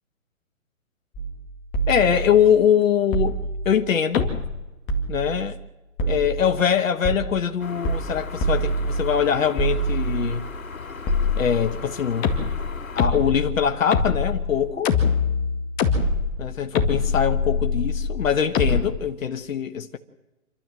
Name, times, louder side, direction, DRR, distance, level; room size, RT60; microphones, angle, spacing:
sound 1, 1.1-1.5 1.7-2.5 3.1-3.8 4.1-4.6 4.9-5.5 6.0-6.6 7.0-7.2 7.8-8.2 8.4-9.2 9.6-10.4 11.1-11.8 12.2-18.8, left 2 dB, 20° left, 2.3 m, -24 dB
voice 1, 1.9-4.3 5.1-5.6 6.1-10.5 11.4-12.3 12.9-14.9 16.4-20.0, left 8 dB, 70° left, 1.4 m, -23 dB
sound 2, 7.6-13.1, left 4 dB, 90° left, 3.6 m, -37 dB
28.0 x 12.5 x 7.6 m
hypercardioid pair, 145°, 41 cm